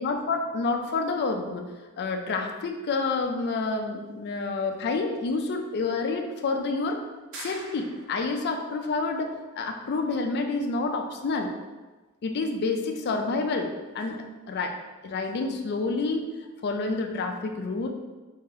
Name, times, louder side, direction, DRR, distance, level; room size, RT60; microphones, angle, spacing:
voice 1, 0.0-1.6 2.0-7.0 7.3-11.5 12.2-14.2 14.5-14.7 15.0-16.3 16.6-17.9, left 3 dB, 50° left, 4 dB, 0.4 m, -28 dB
sound 1, 7.3-8.4, right 2 dB, 60° right, 0.7 m, -42 dB
3.5 x 2.8 x 3.9 m, 1.2 s
head